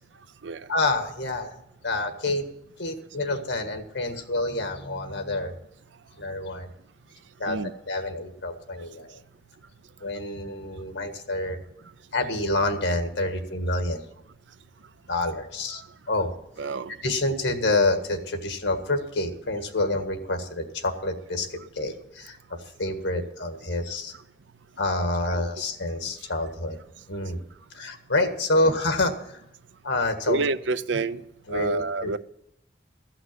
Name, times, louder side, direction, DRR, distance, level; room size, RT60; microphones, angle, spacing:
voice 1, 0.7-1.5 1.8-2.5 2.8-5.5 6.2-6.7 7.4-7.6 7.9-9.2 10.0-11.6 12.1-14.0 15.1-15.8 16.1-16.3 17.0-22.4 22.8-24.1 24.8-26.8 27.1-27.4 27.7-29.4 29.8-30.4 31.5-32.1, left 2 dB, 85° left, 6 dB, 1.7 m, -27 dB
voice 2, 16.6-16.9 25.3-25.4 30.3-31.2 31.5-32.2, right 3 dB, 85° right, 13 dB, 0.6 m, -28 dB
15.0 x 5.9 x 9.2 m, 0.79 s
head